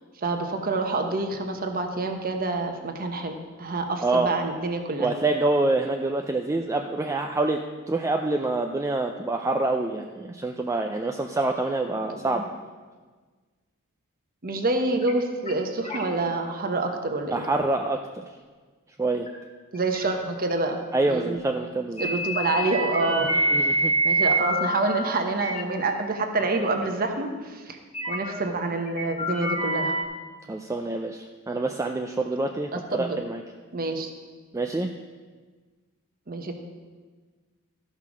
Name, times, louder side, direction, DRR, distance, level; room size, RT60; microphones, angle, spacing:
voice 1, 0.2-5.1 12.1-12.4 14.4-17.4 19.7-20.8 21.1-21.4 22.0-23.4 24.0-27.8 28.1-30.0 32.7-33.2 33.7-34.1 36.3-36.5, right 3 dB, 40° right, 5 dB, 1.0 m, -27 dB
voice 2, 5.0-7.6 7.9-12.4 17.3-18.0 19.0-19.3 20.9-22.1 23.3-23.9 30.5-33.4 34.5-34.9, right 2 dB, 15° right, 3 dB, 0.4 m, -26 dB
sound 1, 15.0-15.1 15.5-15.6 15.8-16.4 16.9-17.1 17.6-17.7 19.3-19.4 19.8-20.1 20.5-20.6 22.0-24.9 25.3-25.6 26.4-26.5 26.7-26.8 27.9-28.4 28.9-30.0, right 1 dB, 30° left, 1.6 m, -26 dB
13.5 x 5.6 x 6.1 m, 1.4 s
head